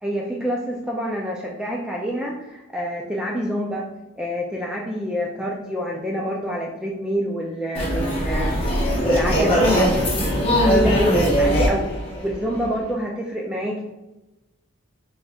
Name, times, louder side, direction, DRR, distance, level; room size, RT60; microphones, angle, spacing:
voice 1, 0.0-3.8 4.2-8.6 9.0-10.2 10.6-11.9 12.2-13.8, equal, 5° right, -2 dB, 0.3 m, -26 dB
sound 1, 7.7-12.9, equal, 25° left, 0.9 m, -21 dB
4.0 x 3.5 x 2.3 m, 1.0 s
head